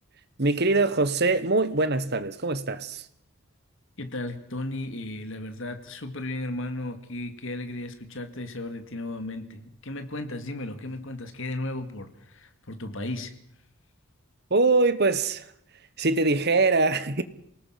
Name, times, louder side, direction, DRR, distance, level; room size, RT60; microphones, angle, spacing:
voice 1, 0.4-3.1 14.5-15.5 16.0-17.2, right 3 dB, 50° right, 1.3 m, -23 dB
voice 2, 4.0-13.3, left 2 dB, 60° left, 2.1 m, -35 dB
27.0 x 19.0 x 5.9 m
head